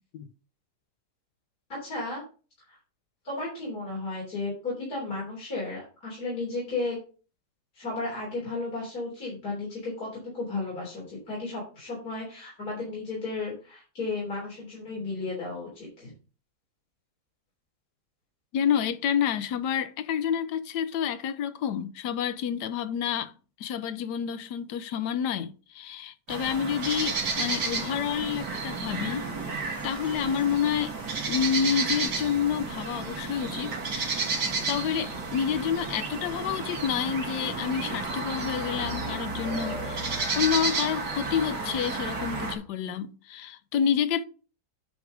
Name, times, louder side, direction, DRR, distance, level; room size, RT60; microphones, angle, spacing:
voice 1, 1.7-2.2 2.6-2.8 3.2-7.0 7.7-16.1, left 3 dB, 65° left, 4.1 m, -34 dB
voice 2, 18.5-23.3 23.6-30.9 31.3-34.3 34.7-44.2, left 8 dB, 80° left, 1.3 m, -29 dB
sound 1, 26.3-42.5, right 3 dB, 75° right, 2.4 m, -32 dB
9.4 x 4.7 x 5.0 m
omnidirectional pair, 1.8 m